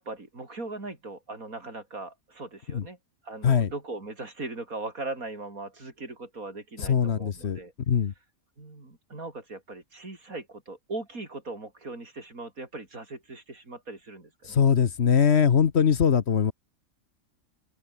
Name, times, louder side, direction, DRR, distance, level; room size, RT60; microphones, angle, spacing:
voice 1, 0.0-3.0 3.2-7.7 8.6-14.6, right 2 dB, 85° right, 5.3 m, -39 dB
voice 2, 6.8-7.6 7.9-8.1 14.5-16.5, left 7 dB, 55° left, 1.2 m, -22 dB
open air
omnidirectional pair, 1.4 m